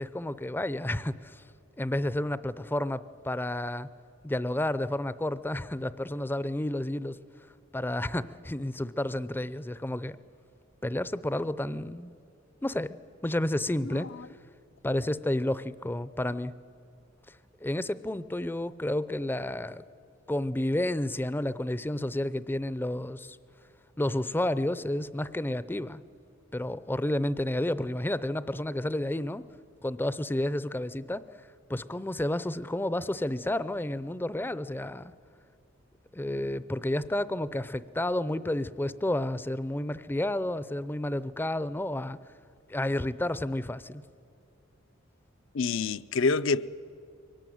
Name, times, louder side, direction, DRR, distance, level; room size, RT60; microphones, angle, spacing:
voice 1, 0.0-1.4 1.8-3.9 4.2-7.2 7.7-10.2 10.8-12.1 12.6-13.0 13.2-14.1 14.8-16.5 17.3-17.4 17.6-19.8 20.3-23.4 24.0-26.0 26.5-29.4 29.8-31.2 31.7-35.1 36.1-42.2 42.7-44.0, left 1 dB, 10° left, 0.5 m, -31 dB
voice 2, 45.5-46.7, left 4 dB, 70° left, 0.6 m, -26 dB
23.5 x 18.0 x 9.3 m
head